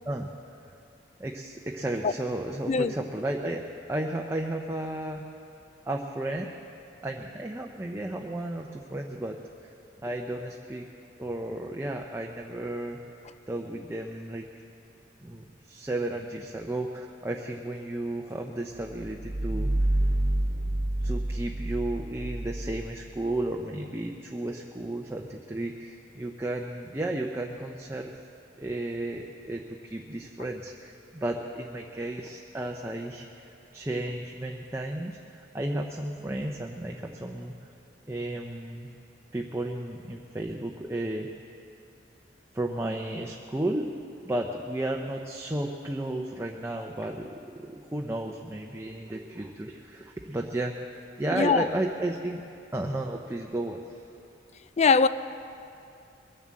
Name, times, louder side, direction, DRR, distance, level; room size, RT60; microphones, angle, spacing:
voice 1, 1.2-5.2 5.9-6.6 7.0-9.4 10.0-10.9 11.2-13.0 13.5-14.5 15.2-19.7 21.0-28.1 28.6-37.5 38.1-38.9 39.3-41.3 42.5-43.9 44.2-52.4 52.7-53.8, right 1 dB, 15° right, 0.7 m, -33 dB
sound 1, 18.9-23.5, right 1 dB, 60° right, 0.7 m, -28 dB
voice 2, 51.3-51.7 54.8-55.1, left 5 dB, 35° left, 0.4 m, -21 dB
21.5 x 7.3 x 7.5 m
head